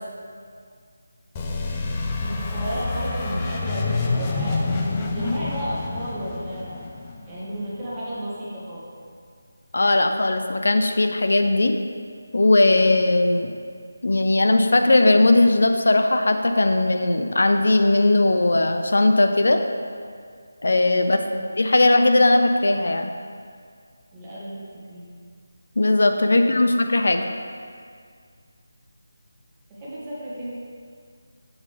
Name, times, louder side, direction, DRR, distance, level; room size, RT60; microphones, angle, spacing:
sound 1, 1.3-7.9, left 3 dB, 20° left, 0.5 m, -28 dB
voice 1, 2.2-6.8 7.3-8.9 20.9-21.5 24.1-25.1 26.2-26.6 29.7-30.5, equal, 15° right, -11 dB, 1.8 m, -33 dB
voice 2, 9.7-11.7 12.3-13.5 14.0-19.6 20.6-21.2 21.6-23.1 25.8-27.2, left 2 dB, 70° left, 6 dB, 0.5 m, -18 dB
7.2 x 6.7 x 3.2 m, 2.1 s
figure-of-eight pair, 165°, 0 cm